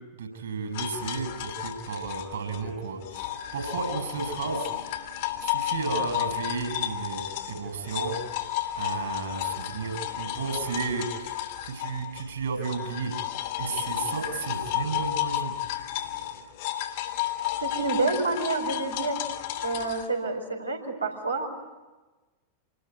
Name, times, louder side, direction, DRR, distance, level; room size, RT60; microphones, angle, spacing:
voice 1, 0.2-4.7 5.4-8.2 8.7-13.1 13.6-15.5, right 5 dB, 65° right, 6 dB, 6.6 m, -33 dB
sound 1, 0.7-12.3 12.6-20.1, left 13 dB, 50° left, 3.0 m, -32 dB
voice 2, 17.6-19.2 19.5-21.5, right 3 dB, 80° right, 1 dB, 4.5 m, -28 dB
27.5 x 20.5 x 9.5 m, 1.2 s
figure-of-eight pair, 90°, 0 cm